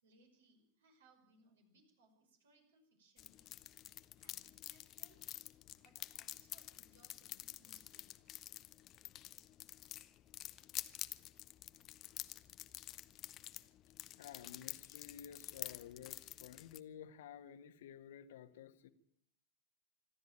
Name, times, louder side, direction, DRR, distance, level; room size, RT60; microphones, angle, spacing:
voice 1, 0.0-3.5 4.1-5.2 5.8-8.1, right 1 dB, 60° right, 4 dB, 5.6 m, -70 dB
sound 1, 3.2-16.8, left 13 dB, 35° left, 0.8 m, -49 dB
voice 2, 14.2-18.9, left 9 dB, 55° left, 11 dB, 1.5 m, -53 dB
26.0 x 12.5 x 8.9 m, 0.71 s
figure-of-eight pair, 90°, 0 cm